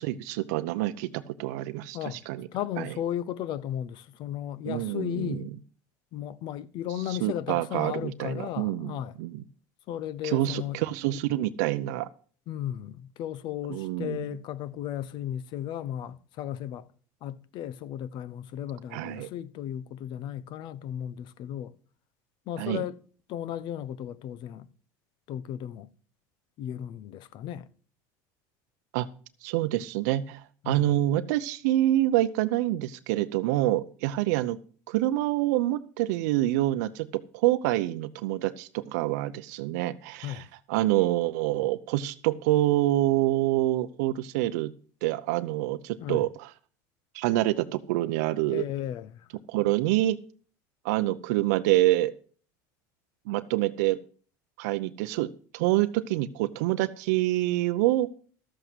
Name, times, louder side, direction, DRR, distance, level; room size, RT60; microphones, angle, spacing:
voice 1, 0.0-2.5 2.8-2.9 4.7-5.4 7.1-9.4 10.2-12.1 13.7-14.2 18.9-19.3 22.6-22.8 28.9-29.1 29.4-34.6 34.9-40.4 40.7-44.7 45.0-46.5 47.1-48.6 49.5-50.2 50.8-52.1 53.3-54.0 54.6-58.1, right 15 dB, 80° right, 0.6 m, -26 dB
voice 2, 2.5-5.5 6.1-9.2 9.9-10.8 12.5-16.9 17.2-21.7 22.5-23.0 23.3-24.7 25.3-25.9 26.6-27.7 30.6-30.9 40.2-40.5 46.0-46.2 48.5-49.3, left 11 dB, 55° left, 0.8 m, -35 dB
12.5 x 8.0 x 6.2 m
supercardioid pair, 110°, 9 cm